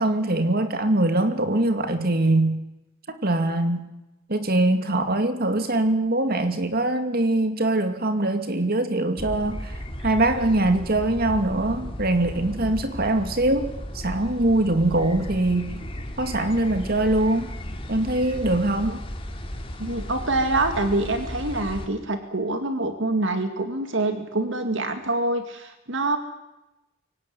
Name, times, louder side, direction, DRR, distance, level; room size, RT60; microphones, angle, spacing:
voice 1, 0.0-2.6 3.1-3.8 4.3-9.8 10.0-15.8 16.2-17.5 17.9-19.0, right 2 dB, 50° right, 8 dB, 2.5 m, -23 dB
sound 1, 9.2-21.9, equal, 25° left, 2.7 m, -35 dB
voice 2, 19.8-26.2, right 2 dB, 65° right, 7 dB, 2.2 m, -25 dB
23.5 x 18.0 x 9.6 m, 0.96 s
head